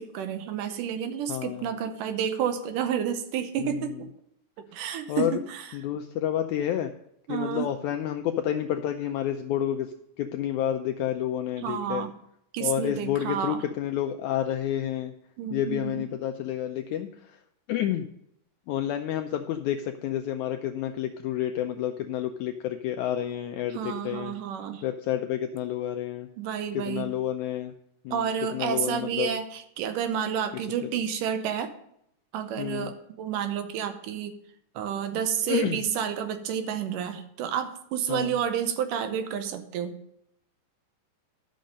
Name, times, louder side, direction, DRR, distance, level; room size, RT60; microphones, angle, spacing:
voice 1, 0.0-4.1 4.6-5.7 7.3-7.7 11.6-12.1 12.5-13.6 15.4-16.1 23.7-24.8 26.4-27.1 28.1-31.7 32.3-34.3 34.8-40.0, right 8 dB, 75° right, 8 dB, 2.3 m, -30 dB
voice 2, 1.3-1.7 3.6-4.0 5.1-5.4 5.7-6.9 7.3-12.1 12.6-15.1 15.5-17.4 17.7-18.1 18.7-24.3 24.8-26.3 26.7-27.7 28.0-29.3 30.5-30.9 32.6-32.9 35.5-35.8 38.1-38.3, left 11 dB, 85° left, 6 dB, 1.7 m, -30 dB
11.5 x 6.4 x 5.2 m, 0.74 s
omnidirectional pair, 3.9 m